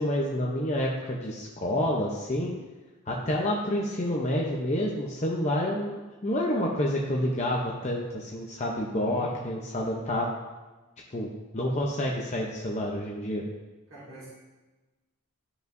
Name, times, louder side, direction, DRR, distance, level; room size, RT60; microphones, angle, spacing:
voice 1, 0.0-2.5 3.1-10.3 11.1-13.4, left 1 dB, 35° left, -2 dB, 0.7 m, -28 dB
voice 2, 9.0-9.6 13.9-14.3, right 1 dB, 75° right, -9 dB, 2.6 m, -46 dB
13.0 x 5.3 x 2.6 m, 1.2 s
head